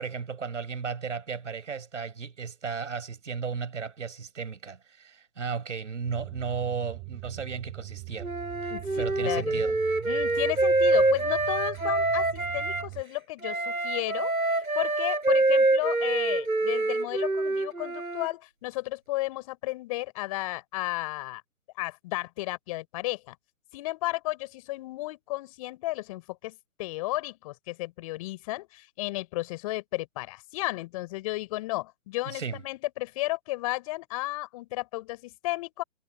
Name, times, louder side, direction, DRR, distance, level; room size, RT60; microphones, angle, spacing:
voice 1, 0.0-8.3 8.6-9.8 32.2-32.6, right 6 dB, 60° right, 5.6 m, -35 dB
sound 1, 6.0-13.0, right 28 dB, 15° right, 2.0 m, -42 dB
Wind instrument woodwind instrument, 8.2-12.9 13.4-18.3, right 2 dB, 90° right, 5.5 m, -26 dB
voice 2, 8.7-9.6 10.0-21.4 21.8-23.3 23.7-35.8, left 19 dB, 25° left, 4.8 m, -33 dB
figure-of-eight pair, 145°, 41 cm